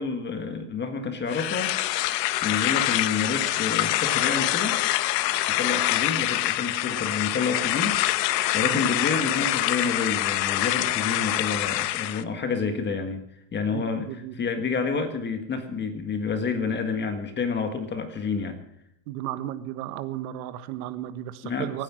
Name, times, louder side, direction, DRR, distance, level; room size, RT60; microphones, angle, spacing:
voice 1, 0.0-1.7 2.4-4.8 5.5-8.0 8.5-13.2 13.5-14.1 14.3-18.6 21.4-21.8, left 5 dB, 20° left, 7 dB, 1.6 m, -29 dB
sound 1, 1.3-12.2, left 15 dB, 85° left, 1.1 m, -25 dB
voice 2, 13.7-14.3 19.1-21.8, right 13 dB, 60° right, 12 dB, 1.5 m, -34 dB
23.0 x 9.8 x 6.1 m, 0.73 s
supercardioid pair, 140°, 49 cm